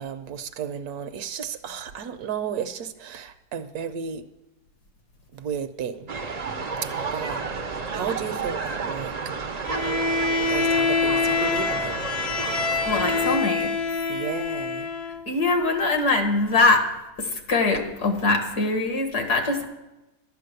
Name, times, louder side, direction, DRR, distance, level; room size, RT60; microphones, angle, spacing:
voice 1, 0.0-4.3 5.3-6.1 6.8-9.4 10.5-12.0 14.1-14.9, right 7 dB, 75° right, 10 dB, 1.2 m, -33 dB
sound 1, 6.1-13.4, right 4 dB, 50° right, 0.4 m, -31 dB
Bowed string instrument, 9.6-15.3, left 4 dB, 40° left, 0.7 m, -25 dB
voice 2, 12.9-13.8 15.3-16.9 17.2-19.6, left 3 dB, 75° left, 5 dB, 2.1 m, -22 dB
12.0 x 8.5 x 6.6 m, 0.99 s
omnidirectional pair, 1.7 m